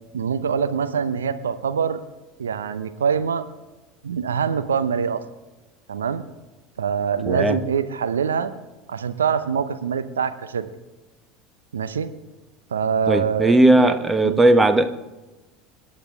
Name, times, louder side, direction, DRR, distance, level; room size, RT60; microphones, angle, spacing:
voice 1, 0.1-2.0 2.4-3.4 4.0-5.2 5.9-6.2 6.8-8.5 8.9-10.7 11.7-12.1 12.7-14.0 14.2-14.4, right 7 dB, 75° right, 11 dB, 0.9 m, -24 dB
voice 2, 7.3-7.6 13.1-14.9, right 2 dB, 15° right, 11 dB, 1.1 m, -17 dB
27.0 x 10.5 x 3.6 m, 1.1 s
figure-of-eight pair, 70°, 0 cm